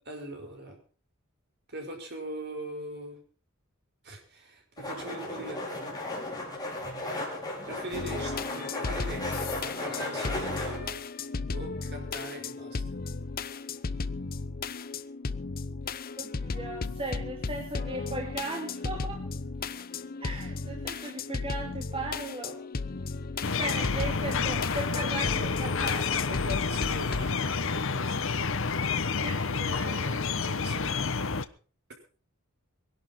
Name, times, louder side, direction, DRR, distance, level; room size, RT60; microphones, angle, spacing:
voice 1, 0.0-0.8 1.7-3.2 4.0-6.1 7.6-11.1 11.5-12.8 26.1-28.5 29.2-31.5, right 1 dB, 50° right, 3 dB, 5.7 m, -42 dB
sound 1, 4.8-10.8, left 1 dB, 20° left, 5.5 m, -35 dB
sound 2, 7.9-27.3, left 4 dB, 45° left, 0.8 m, -35 dB
voice 2, 16.2-19.2 20.2-22.6 23.5-26.1 29.2-29.6, right 2 dB, 25° right, 0 dB, 2.9 m, -37 dB
sound 3, 23.4-31.5, left 5 dB, 65° left, 1.1 m, -29 dB
22.5 x 11.5 x 4.3 m, 0.39 s
head